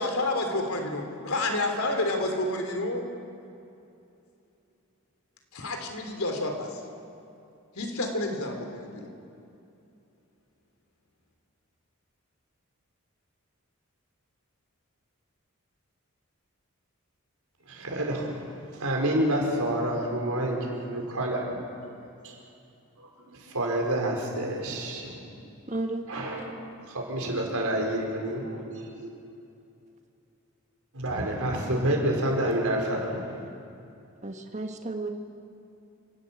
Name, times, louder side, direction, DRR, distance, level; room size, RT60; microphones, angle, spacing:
voice 1, 0.0-3.0 5.5-6.7 7.8-9.1, left 2 dB, 75° left, 4 dB, 3.3 m, -29 dB
voice 2, 17.7-21.6 22.2-22.3 23.0-25.3 26.1-26.5 26.9-29.1 30.9-33.5, right 1 dB, 85° right, 0 dB, 4.9 m, -29 dB
voice 3, 25.7-26.1 34.2-35.1, right 2 dB, 30° right, 4 dB, 1.5 m, -32 dB
28.5 x 12.0 x 8.8 m, 2.7 s
head